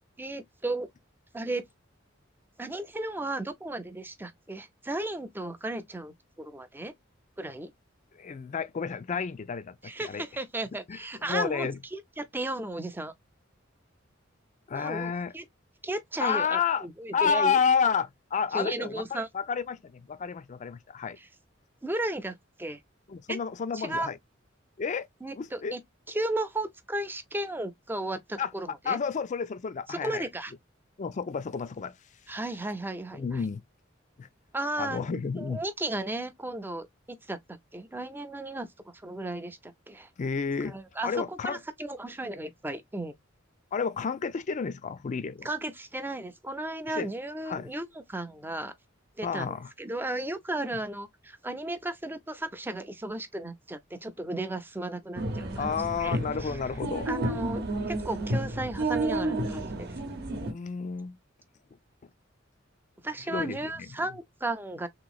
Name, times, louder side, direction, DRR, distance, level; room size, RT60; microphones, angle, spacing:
voice 1, 0.2-0.9 1.3-1.6 2.6-6.9 7.4-7.7 9.8-13.1 14.7-15.4 15.8-17.6 18.5-19.3 21.2-21.3 21.8-22.8 23.3-23.4 23.7-24.1 25.2-25.8 26.1-29.0 29.9-30.5 32.3-33.4 34.5-36.9 37.3-40.1 40.6-43.1 45.4-48.7 49.2-56.6 57.1-59.9 63.0-64.9, right 1 dB, 10° right, 0.5 m, -35 dB
voice 2, 8.1-10.2 10.9-11.0 11.2-11.8 14.7-15.3 16.2-16.9 17.1-21.2 23.1-24.2 24.8-25.1 25.4-25.7 28.4-28.5 28.8-30.3 31.0-32.0 32.3-32.4 33.1-33.6 34.2-34.3 34.8-35.6 40.2-41.6 43.7-45.5 47.0-47.1 47.5-47.7 49.2-49.7 55.6-57.1 60.3-61.2 63.3-63.9, left 6 dB, 40° left, 0.4 m, -30 dB
sound 1, 55.2-60.5, right 1 dB, 55° right, 0.8 m, -31 dB
3.5 x 2.9 x 2.3 m
head